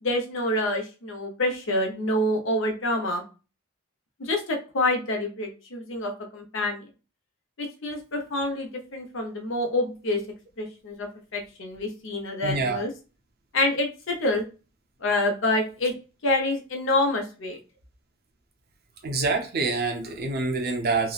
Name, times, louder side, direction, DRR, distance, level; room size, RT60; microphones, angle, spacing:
voice 1, 0.0-3.2 4.2-6.8 7.6-10.2 10.6-12.9 13.5-14.4 15.0-15.9 16.2-17.6, left 1 dB, 65° left, 0.7 m, -27 dB
voice 2, 12.4-12.8 19.0-21.1, right 3 dB, 50° right, 0.6 m, -26 dB
2.9 x 2.1 x 2.3 m
head